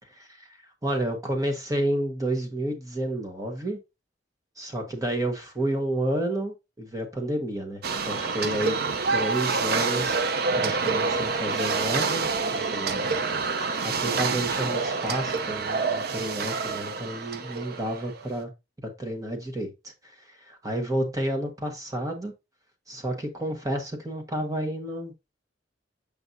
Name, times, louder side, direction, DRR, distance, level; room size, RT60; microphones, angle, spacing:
voice 1, 0.2-0.6 0.8-3.8 4.6-8.7 9.1-10.2 10.6-13.1 13.8-18.5 18.8-19.9 20.3-22.3 22.9-25.1, right 1 dB, 20° right, 1.4 m, -30 dB
sound 1, 7.8-18.2, right 4 dB, 55° right, 0.6 m, -27 dB
7.8 x 5.3 x 2.6 m
head